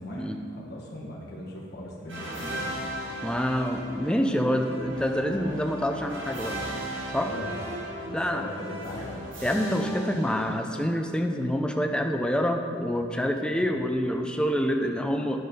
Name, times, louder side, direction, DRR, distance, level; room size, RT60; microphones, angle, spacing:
voice 1, 0.0-2.7 7.1-7.6 8.1-9.2, equal, 50° left, -4 dB, 1.2 m, -39 dB
sound 1, 2.1-11.0, right 1 dB, 70° right, 1.9 m, -37 dB
voice 2, 3.2-6.6 7.1-7.3 8.1-8.4 9.4-15.4, equal, 5° left, 4 dB, 0.4 m, -27 dB
9.4 x 6.0 x 5.1 m, 2.4 s
head